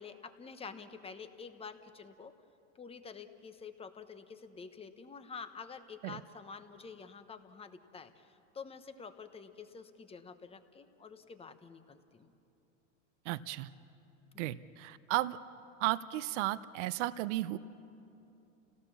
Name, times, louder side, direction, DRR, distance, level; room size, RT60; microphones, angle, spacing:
voice 1, 0.0-2.3 2.7-12.3, left 5 dB, 15° left, 9 dB, 1.1 m, -48 dB
voice 2, 13.2-13.7 14.4-15.4 15.8-17.6, right 16 dB, 65° right, 15 dB, 0.8 m, -34 dB
29.5 x 17.0 x 7.1 m, 2.8 s
supercardioid pair, 130°, 38 cm